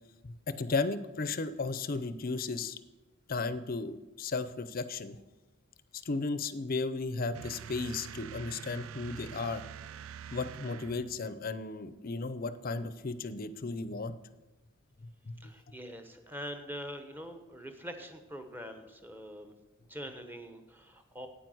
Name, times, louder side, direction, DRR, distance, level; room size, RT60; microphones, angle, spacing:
voice 1, 0.2-2.8 3.3-5.2 5.9-9.6 10.3-14.1 15.2-15.5, left 3 dB, 45° left, 14 dB, 0.6 m, -35 dB
sound 1, 7.3-11.3, right 8 dB, 75° right, 0.4 m, -45 dB
voice 2, 15.4-19.5 19.9-21.3, equal, 10° right, 7 dB, 1.1 m, -44 dB
9.2 x 9.0 x 7.8 m, 1.1 s
head